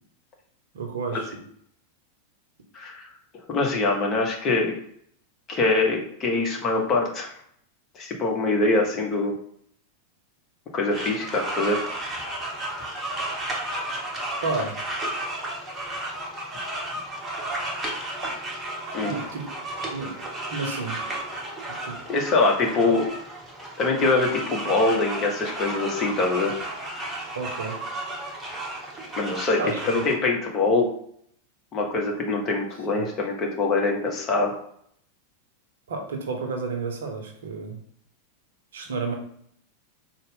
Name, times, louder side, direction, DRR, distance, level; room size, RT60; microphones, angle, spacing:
voice 1, 0.7-1.3 14.4-14.8 19.0-19.5 19.9-20.1 20.5-21.0 21.8-22.0 27.3-27.8 29.6-30.0 32.9-33.1 35.9-37.8 38.7-39.1, right 4 dB, 65° right, 3 dB, 0.6 m, -31 dB
voice 2, 2.7-3.1 3.5-4.7 5.5-7.3 7.9-9.3 10.7-11.8 18.9-19.1 22.1-23.1 23.8-26.6 29.2-30.9 31.7-34.5, left 3 dB, 30° left, 1 dB, 0.9 m, -24 dB
sound 1, 10.9-30.1, right 1 dB, 15° right, 0.9 m, -33 dB
4.0 x 2.1 x 3.6 m, 0.65 s
figure-of-eight pair, 90°, 0 cm